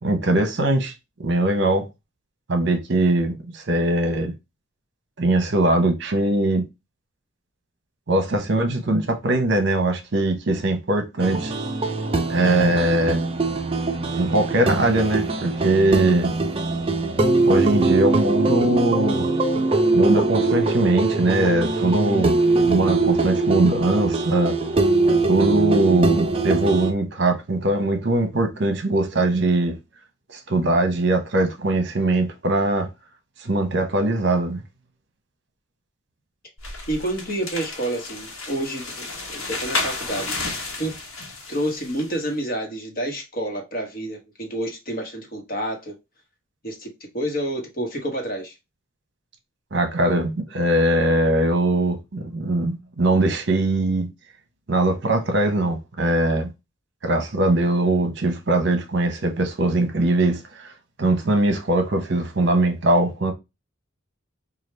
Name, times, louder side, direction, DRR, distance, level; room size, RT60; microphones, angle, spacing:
voice 1, 0.0-0.9 1.2-1.9 2.5-4.3 5.2-6.7 8.1-11.5 12.3-13.2 14.2-16.3 17.5-19.3 19.9-22.4 22.6-24.6 25.3-29.7 30.3-32.9 33.4-34.6 49.7-54.1 54.7-56.5 57.0-60.7 61.0-63.3, right 2 dB, 55° right, 0.9 m, -21 dB
sound 1, 11.2-26.9, right 3 dB, 25° right, 0.5 m, -22 dB
sound 2, 36.6-42.1, left 3 dB, 85° left, 1.3 m, -32 dB
voice 2, 36.9-40.9 41.5-45.9 46.6-46.9 47.1-48.5, right 1 dB, 45° left, 1.1 m, -29 dB
4.8 x 2.4 x 3.2 m
head